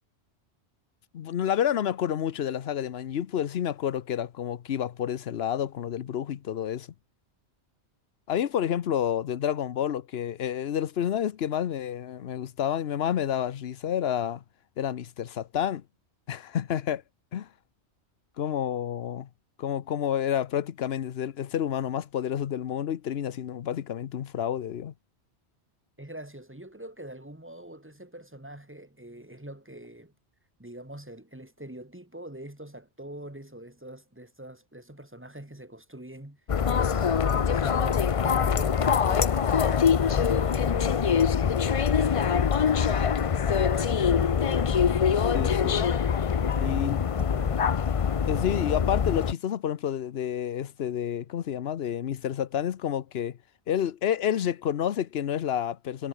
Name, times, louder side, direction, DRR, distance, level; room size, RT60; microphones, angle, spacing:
voice 1, 1.1-6.9 8.3-14.4 14.8-15.8 16.3-17.0 17.3-17.5 18.4-19.3 19.6-24.9 45.2-45.8 46.6-47.0 48.3-53.4 53.7-56.1, left 9 dB, 65° left, 1.0 m, -29 dB
voice 2, 26.0-30.1 30.6-44.9 46.4-47.7, right 1 dB, 10° right, 2.1 m, -44 dB
sound 1, 36.5-49.3, left 7 dB, 40° left, 0.5 m, -24 dB
omnidirectional pair, 1.2 m